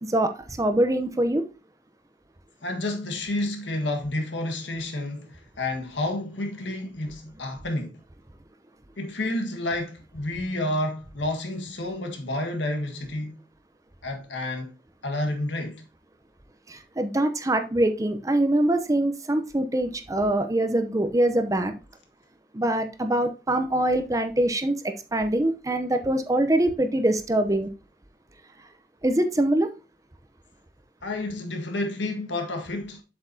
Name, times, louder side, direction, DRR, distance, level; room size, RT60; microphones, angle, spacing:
voice 1, 0.6-1.4 16.7-21.7 22.5-24.7 25.1-27.7 29.0-29.7, right 1 dB, 20° right, 0.7 m, -23 dB
voice 2, 2.6-8.0 9.0-13.4 14.0-14.7 15.0-15.8 31.0-33.0, left 1 dB, 85° left, 1.7 m, -30 dB
7.5 x 6.9 x 2.8 m
head